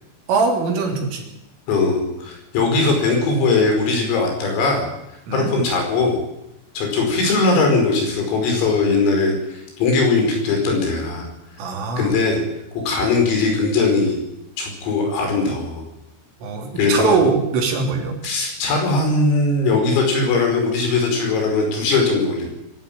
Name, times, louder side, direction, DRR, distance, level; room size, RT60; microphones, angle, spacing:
voice 1, 0.3-1.3 5.3-5.5 11.6-12.1 16.4-18.2, right 4 dB, 75° right, 2 dB, 5.7 m, -21 dB
voice 2, 1.7-4.9 5.3-6.2 6.8-11.3 12.0-12.4 12.9-14.2 14.6-15.8 16.8-17.2 18.2-22.5, left 3 dB, 85° left, 2 dB, 8.0 m, -19 dB
23.0 x 12.0 x 9.5 m, 0.87 s
omnidirectional pair, 5.9 m